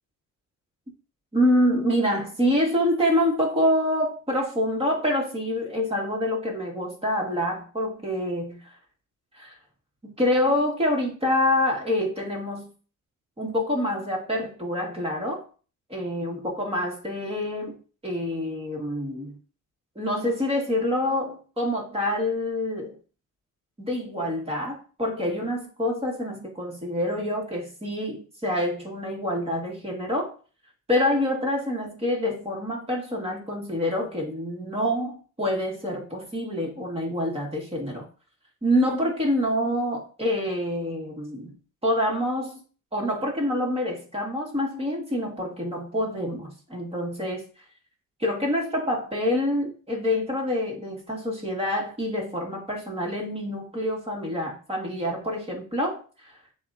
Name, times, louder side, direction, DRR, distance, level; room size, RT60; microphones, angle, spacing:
voice 1, 1.3-8.5 9.4-9.5 10.0-12.7 13.4-15.4 15.9-17.8 18.0-19.4 19.9-22.9 23.8-30.3 30.9-38.1 38.6-41.5 41.8-42.6 42.9-47.4 48.2-56.3, left 1 dB, 20° right, -1 dB, 1.7 m, -26 dB
7.5 x 2.5 x 2.6 m, 0.38 s
cardioid pair, 90°, 30 cm